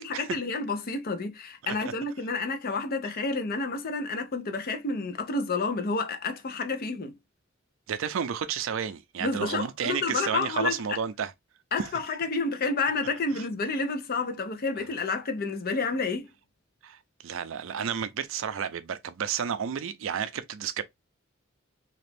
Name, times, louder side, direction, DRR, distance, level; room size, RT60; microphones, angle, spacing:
voice 1, 0.0-7.1 9.2-10.8 11.7-16.3, left 3 dB, 45° left, 0.6 m, -30 dB
voice 2, 7.9-11.3 11.8-11.9 13.3-13.4 16.8-20.8, right 7 dB, 70° right, 0.4 m, -31 dB
3.0 x 2.5 x 3.3 m
head